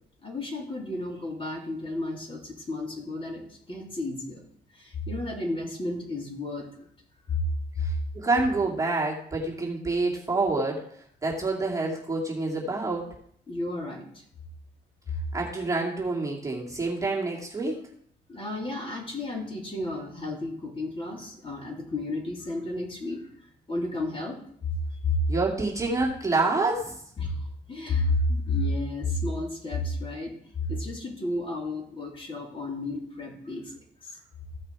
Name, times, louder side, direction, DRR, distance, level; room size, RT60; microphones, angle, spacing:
voice 1, 0.2-4.4 4.7-6.7 7.3-7.4 13.5-14.2 18.3-23.3 23.7-24.4 25.0-25.2 27.2-30.3 30.7-33.7 34.0-34.2, left 2 dB, 25° left, -1 dB, 3.2 m, -32 dB
voice 2, 7.8-13.1 15.3-17.8 25.3-27.0, right 3 dB, 15° right, -3 dB, 2.4 m, -27 dB
15.0 x 5.6 x 4.8 m, 0.66 s
cardioid pair, 90°, 20 cm